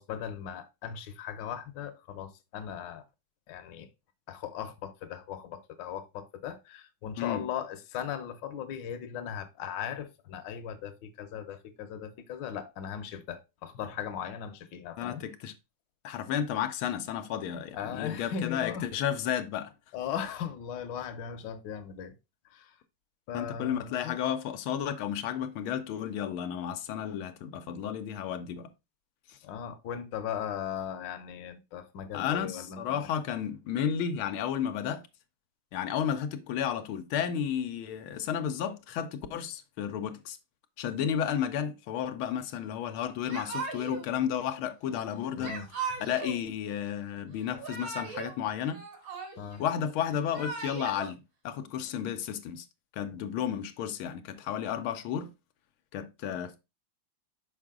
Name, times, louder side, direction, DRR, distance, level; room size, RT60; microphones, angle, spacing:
voice 1, 0.0-3.0 3.5-3.9 4.3-15.2 17.8-18.9 19.9-22.1 22.5-22.7 23.3-24.1 29.4-33.1 45.4-45.7 49.4-49.6, left 8 dB, 65° left, 1.4 m, -38 dB
voice 2, 15.0-15.5 16.0-19.7 23.3-28.7 29.3-29.4 32.1-35.1 35.7-40.4 40.8-45.5 46.0-48.8 49.6-52.7 53.0-55.3 55.9-56.6, left 9 dB, 90° left, 1.6 m, -32 dB
Yell / Crying sobbing, 43.3-44.1 45.4-46.4 47.4-48.3 48.6-49.6 50.1-51.1, right 4 dB, 65° right, 2.6 m, -38 dB
6.5 x 4.8 x 3.6 m
omnidirectional pair, 2.2 m